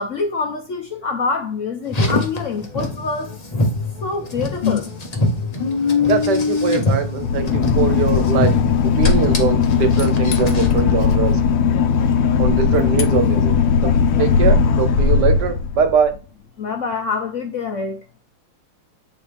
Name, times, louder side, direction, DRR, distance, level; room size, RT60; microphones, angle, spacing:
voice 1, 0.0-3.3 4.0-4.9 16.6-18.0, left 4 dB, 55° left, 0.9 m, -25 dB
Car, 1.8-10.8, left 3 dB, 30° left, 0.8 m, -23 dB
voice 2, 6.1-8.5 9.0-11.4 12.4-13.5 13.8-13.9 14.2-16.1, right 7 dB, 70° right, 1.5 m, -22 dB
Boat Water vehicle / Engine, 7.1-16.1, left 6 dB, 80° left, 1.4 m, -17 dB
9.0 x 4.0 x 3.4 m
omnidirectional pair, 2.0 m